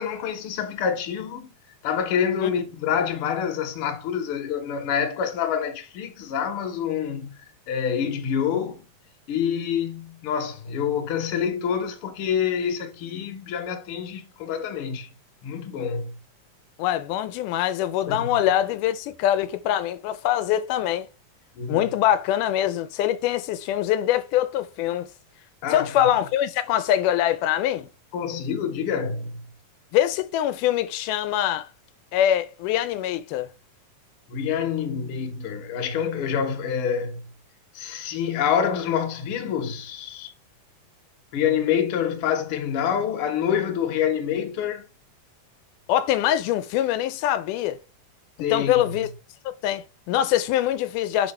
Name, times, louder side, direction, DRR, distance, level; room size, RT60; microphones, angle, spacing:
voice 1, 0.0-1.5 1.8-7.4 7.7-8.8 9.3-15.1 15.4-16.2 18.1-18.3 21.5-21.8 25.6-25.9 28.1-29.4 34.3-37.2 37.7-40.3 41.3-44.8 48.4-48.8, left 8 dB, 60° left, 1.7 m, -27 dB
voice 2, 16.8-21.1 21.7-25.1 25.7-27.9 29.9-31.7 32.1-33.5 45.9-47.8 48.5-49.1 49.6-51.3, left 12 dB, 85° left, 2.1 m, -23 dB
4.6 x 4.4 x 5.4 m
omnidirectional pair, 3.6 m